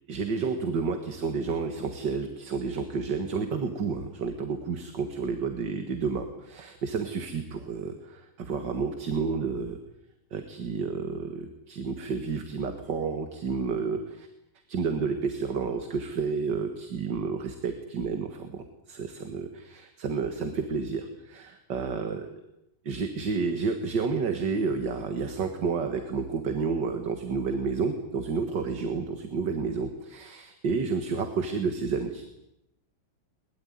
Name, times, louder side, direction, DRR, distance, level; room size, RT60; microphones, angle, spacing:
voice 1, 0.1-9.8 10.3-14.3 14.7-22.3 22.9-32.2, right 5 dB, 55° right, 6 dB, 2.4 m, -30 dB
22.0 x 21.0 x 9.5 m, 0.87 s
omnidirectional pair, 2.3 m